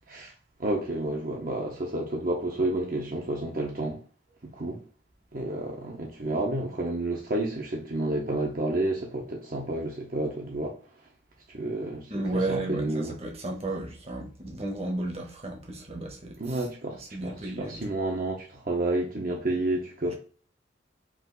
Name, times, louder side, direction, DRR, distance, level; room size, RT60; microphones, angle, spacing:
voice 1, 0.6-4.0 4.5-4.8 5.3-10.8 11.5-12.2 12.5-13.1 16.4-20.1, right 2 dB, 50° right, 0.9 m, -30 dB
voice 2, 12.1-17.9 20.1-20.2, right 2 dB, 35° right, 1.1 m, -34 dB
5.0 x 2.6 x 3.8 m
head